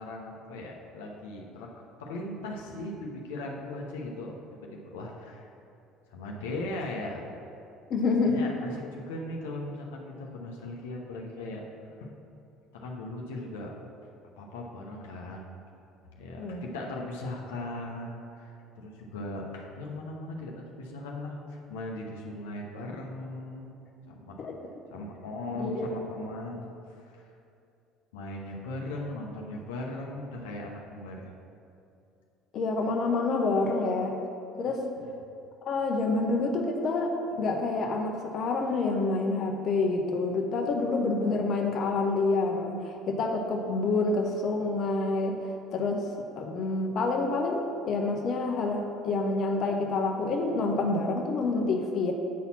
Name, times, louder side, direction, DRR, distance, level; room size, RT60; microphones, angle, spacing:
voice 1, 0.0-1.7 2.0-4.4 4.6-5.5 6.1-7.2 8.2-11.6 12.0-12.1 12.7-13.7 14.4-15.5 16.2-23.7 24.1-24.5 24.9-27.3 28.1-31.3 35.0-35.1, left 2 dB, 80° left, 0 dB, 0.8 m, -38 dB
voice 2, 7.9-8.4 16.4-16.6 24.4-24.6 25.5-25.9 32.5-34.2 34.6-34.8 35.6-46.1 46.4-52.1, left 3 dB, 55° left, 2 dB, 0.8 m, -28 dB
8.4 x 4.1 x 5.9 m, 2.6 s
hypercardioid pair, 70°, 0 cm